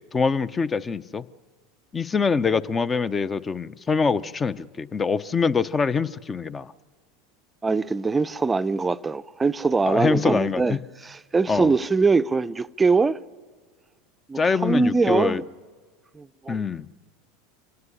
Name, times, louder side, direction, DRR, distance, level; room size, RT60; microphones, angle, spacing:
voice 1, 0.1-1.3 1.9-6.7 9.9-10.8 11.5-11.7 14.4-15.4 16.5-16.9, left 5 dB, 25° left, 0.7 m, -24 dB
voice 2, 7.6-13.2 14.3-15.4 16.1-16.6, right 4 dB, 15° right, 0.6 m, -22 dB
26.0 x 17.5 x 10.0 m
hypercardioid pair, 85°, 0 cm